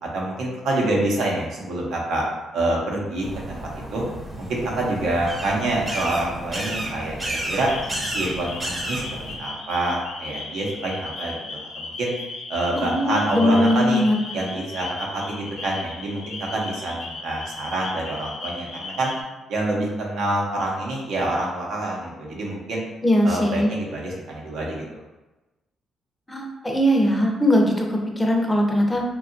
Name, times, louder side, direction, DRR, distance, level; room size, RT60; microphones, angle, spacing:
voice 1, 0.0-2.2 2.5-3.6 3.9-4.0 4.5-7.7 8.1-12.1 12.5-14.0 14.3-19.1 19.5-22.8 23.2-25.0, right 2 dB, 80° right, -2 dB, 0.7 m, -26 dB
sound 1, 3.2-9.4, right 1 dB, 25° right, 0.7 m, -32 dB
sound 2, 7.6-19.2, left 3 dB, 75° left, 0.4 m, -36 dB
voice 2, 12.8-14.2 23.0-23.7 26.3-29.0, equal, 15° left, 1 dB, 0.5 m, -20 dB
2.8 x 2.3 x 2.5 m, 1.1 s
cardioid pair, 90°, 0 cm